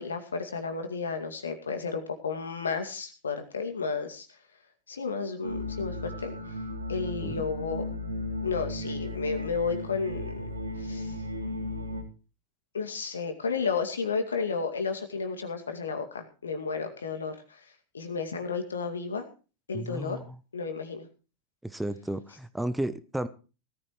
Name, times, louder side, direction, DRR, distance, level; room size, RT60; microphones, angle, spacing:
voice 1, 0.0-4.3 4.9-6.3 6.9-7.9 8.4-10.5 10.8-11.1 12.7-17.6 17.9-19.3 19.7-20.2 20.5-21.1, left 5 dB, 70° left, 6 dB, 2.3 m, -32 dB
sound 1, 5.4-12.0, left 1 dB, 80° right, 2.1 m, -35 dB
voice 2, 19.7-20.4 21.6-23.3, right 1 dB, 5° right, 14 dB, 0.9 m, -33 dB
19.0 x 14.0 x 3.2 m, 0.34 s
figure-of-eight pair, 90°, 0 cm